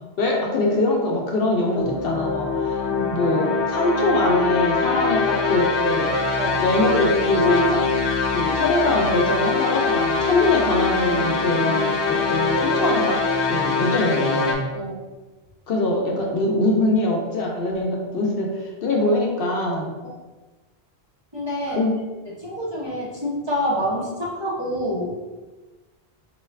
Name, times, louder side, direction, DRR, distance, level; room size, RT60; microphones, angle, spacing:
voice 1, 0.2-2.8 3.1-6.1 6.6-7.8 8.3-13.2 13.4-14.6 15.7-19.9 21.7-21.9, left 2 dB, 65° left, 0 dB, 0.8 m, -23 dB
sound 1, 1.7-14.5, left 4 dB, 90° left, 1.0 m, -23 dB
voice 2, 14.7-15.0 21.3-21.8 22.4-25.1, equal, 25° right, -7 dB, 0.8 m, -27 dB
3.9 x 2.3 x 3.2 m, 1.2 s
omnidirectional pair, 1.1 m